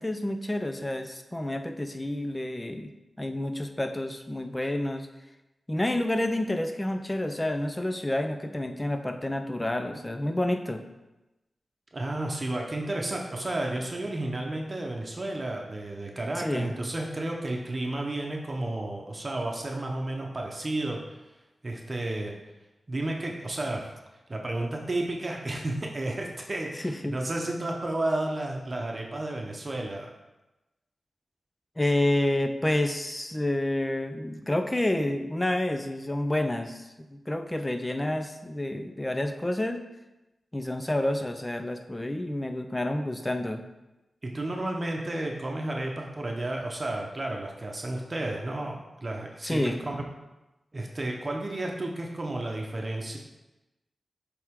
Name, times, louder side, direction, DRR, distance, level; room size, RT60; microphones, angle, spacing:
voice 1, 0.0-2.9 3.2-5.1 5.7-10.9 16.3-16.7 26.7-27.2 31.8-39.8 40.5-43.6 49.4-49.8, left 1 dB, 20° left, 7 dB, 0.6 m, -29 dB
voice 2, 11.9-21.2 21.6-22.3 22.9-23.9 24.3-30.1 44.2-50.0 50.7-53.2, right 1 dB, 40° right, 0 dB, 0.9 m, -32 dB
7.6 x 3.5 x 3.6 m, 1.0 s
cardioid pair, 60°, 0 cm